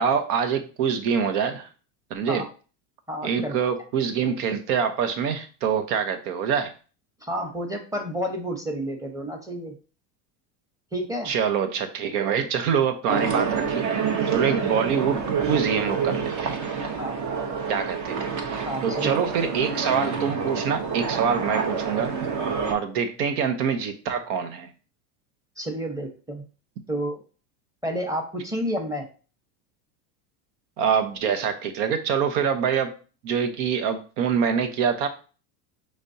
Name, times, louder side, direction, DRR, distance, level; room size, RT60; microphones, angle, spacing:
voice 1, 0.0-1.7 2.1-2.4 3.2-6.7 11.2-13.9 14.3-16.7 17.7-18.3 18.8-22.1 22.7-24.7 30.8-32.9 33.2-35.1, right 7 dB, 70° right, 7 dB, 1.0 m, -25 dB
voice 2, 3.1-3.5 7.2-9.7 10.9-11.3 17.0-17.2 18.6-19.1 25.6-26.4 26.9-27.2 27.8-29.1, equal, 5° right, 3 dB, 1.0 m, -30 dB
sound 1, 13.1-22.7, right 6 dB, 35° right, 0.9 m, -27 dB
5.1 x 3.5 x 2.7 m, 0.37 s
supercardioid pair, 105°, 47 cm